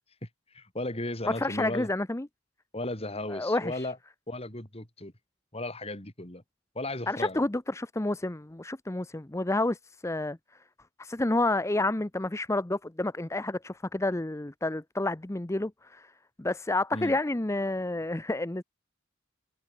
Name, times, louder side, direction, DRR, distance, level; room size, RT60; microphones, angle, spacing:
voice 1, 0.2-1.9 2.7-4.0 4.3-5.1 5.5-6.4 6.7-7.4 16.9-17.2, left 1 dB, 30° left, 5.0 m, -35 dB
voice 2, 1.3-2.3 3.3-3.9 7.1-10.4 11.0-16.1 16.4-18.6, left 2 dB, 15° left, 0.7 m, -29 dB
head